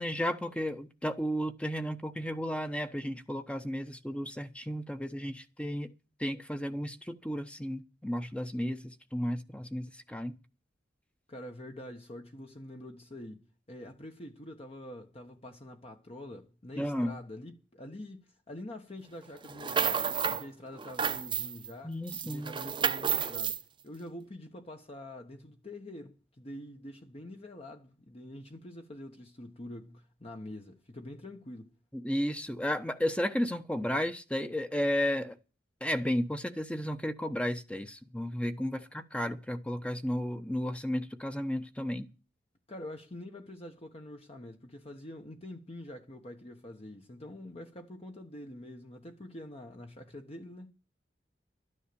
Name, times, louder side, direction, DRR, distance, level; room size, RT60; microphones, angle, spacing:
voice 1, 0.0-5.9 6.2-10.4 16.8-17.2 21.8-22.6 31.9-35.4 35.8-42.1, equal, 5° left, 0.9 m, -33 dB
voice 2, 11.3-22.0 22.2-31.7 42.7-50.7, left 1 dB, 35° left, 1.2 m, -46 dB
sound 1, 19.4-20.4 20.8-21.7 22.1-23.6, right 6 dB, 25° right, 0.8 m, -31 dB
12.5 x 9.9 x 6.9 m
head